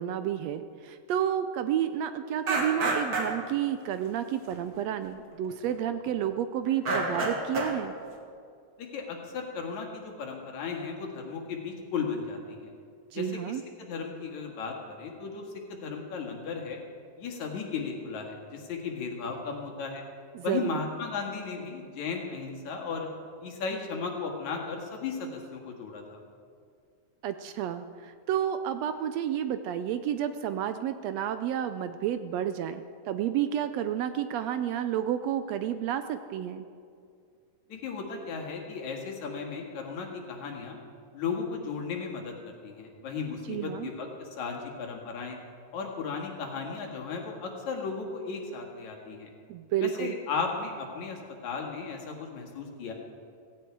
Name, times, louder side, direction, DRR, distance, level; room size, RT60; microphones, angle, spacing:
voice 1, 0.0-7.9 13.1-13.6 20.3-20.8 27.2-36.6 43.5-43.9 49.5-50.1, right 10 dB, 75° right, 10 dB, 1.6 m, -30 dB
sound 1, 2.5-3.5 4.5-4.6 5.5-5.7 6.1-6.3 6.7-7.8, right 2 dB, 35° right, 1.8 m, -29 dB
voice 2, 8.8-12.7 13.1-16.8 17.2-20.0 20.4-23.1 23.4-26.2 37.7-40.8 41.1-45.4 45.7-49.3 49.8-52.9, left 5 dB, 75° left, 1 dB, 3.2 m, -35 dB
16.5 x 16.5 x 4.7 m, 2.3 s
omnidirectional pair, 3.3 m